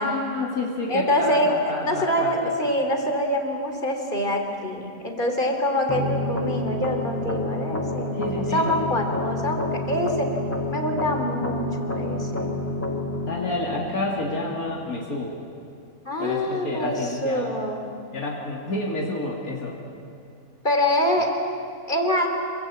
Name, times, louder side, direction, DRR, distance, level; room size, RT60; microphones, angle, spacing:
voice 1, 0.0-2.5 8.1-8.7 13.3-15.3 16.2-17.6 18.1-19.8, left 2 dB, 90° left, -2 dB, 3.2 m, -29 dB
voice 2, 0.9-10.3 10.7-12.6 16.0-17.0 17.2-17.9 20.6-21.3 21.9-22.3, left 1 dB, 35° left, 4 dB, 3.4 m, -25 dB
sound 1, 5.9-14.9, left 2 dB, 10° left, 1.7 m, -29 dB
27.5 x 22.5 x 8.6 m, 2.4 s
omnidirectional pair, 1.5 m